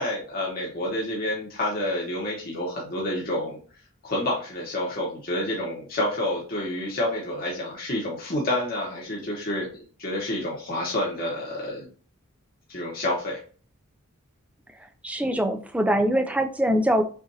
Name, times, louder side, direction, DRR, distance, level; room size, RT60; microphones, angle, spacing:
voice 1, 0.0-3.6 4.0-9.7 10.0-11.9 12.7-13.4, left 1 dB, 45° left, -3 dB, 1.1 m, -28 dB
voice 2, 15.0-17.0, equal, 5° right, 5 dB, 0.4 m, -23 dB
5.9 x 2.6 x 2.7 m, 0.39 s
head